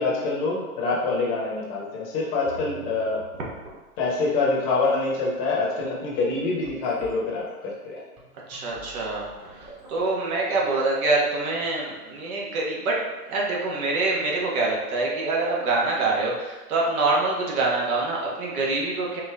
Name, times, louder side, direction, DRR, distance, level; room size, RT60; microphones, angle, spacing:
voice 1, 0.0-3.2 4.0-8.0, left 3 dB, 30° left, -3 dB, 0.9 m, -25 dB
sound 1, 1.5-1.6 1.9-2.0 2.5-3.3 3.6-4.1 4.9-5.0 5.2-5.6 6.1-11.7, right 3 dB, 25° right, 1.3 m, -45 dB
voice 2, 8.5-19.2, right 3 dB, 65° right, -3 dB, 1.3 m, -25 dB
4.6 x 2.8 x 3.4 m, 1.1 s
hypercardioid pair, 130°, 47 cm